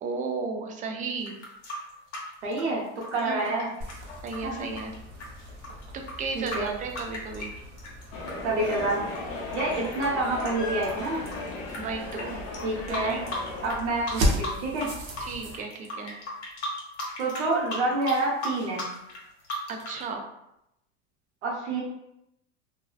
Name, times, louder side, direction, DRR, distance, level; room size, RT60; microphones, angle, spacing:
voice 1, 0.0-1.4 3.1-3.5 4.2-4.9 6.2-7.5 11.8-12.4 12.9-13.2 15.2-16.2 19.7-20.2, right 4 dB, 25° right, 4 dB, 0.3 m, -34 dB
sound 1, 1.2-8.3 8.7-11.8 12.1-12.2 12.5-13.8 14.1-14.9 15.1-20.0, left 1 dB, 80° left, 0.9 m, -36 dB
voice 2, 2.4-2.8 3.1-3.7 4.4-4.7 6.3-6.7 8.4-9.0 9.5-11.2 12.6-13.2 13.6-14.9 17.2-18.9 21.4-21.8, right 2 dB, 85° right, -3 dB, 0.7 m, -28 dB
sound 2, 3.8-15.6, equal, 45° right, 0.7 m, -36 dB
sound 3, 8.1-13.7, left 2 dB, 55° left, 0.7 m, -36 dB
2.6 x 2.0 x 2.4 m, 0.83 s
hypercardioid pair, 100°, 34 cm